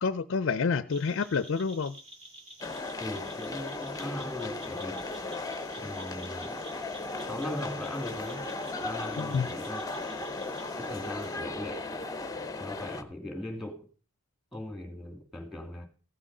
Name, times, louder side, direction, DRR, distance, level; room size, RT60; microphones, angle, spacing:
voice 1, 0.0-2.0 9.2-9.5, left 5 dB, 55° left, 0.4 m, -28 dB
sound 1, 0.9-11.4, right 1 dB, 30° right, 2.8 m, -50 dB
sound 2, 2.6-13.0, left 2 dB, 15° left, 0.7 m, -36 dB
voice 2, 3.0-5.1 5.8-6.6 7.2-8.5 8.8-10.1 10.8-11.9 12.6-13.8 14.5-15.9, left 1 dB, ahead, 2.3 m, -39 dB
15.0 x 6.2 x 5.4 m
head